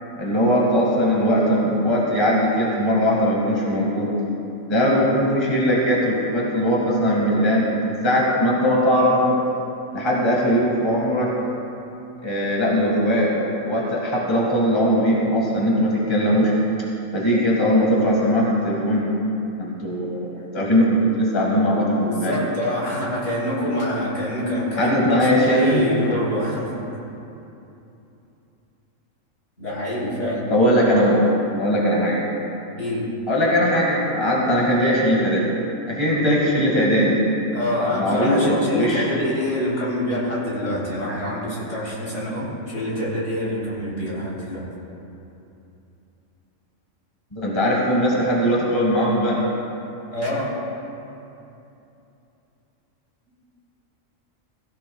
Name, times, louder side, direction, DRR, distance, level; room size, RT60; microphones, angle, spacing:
voice 1, 0.2-4.1 4.7-9.4 9.9-11.3 12.2-13.3 13.6-16.5 17.1-19.1 19.6-22.4 24.8-25.8 30.5-31.3 31.6-32.2 33.3-35.6 35.9-37.2 37.8-39.1 47.3-49.4, equal, 20° left, -4 dB, 1.8 m, -20 dB
voice 2, 22.0-26.7 29.6-30.5 32.8-33.0 37.5-44.7 50.1-50.5, left 1 dB, 60° left, -7 dB, 3.7 m, -26 dB
16.5 x 16.0 x 2.3 m, 2.8 s
omnidirectional pair, 1.4 m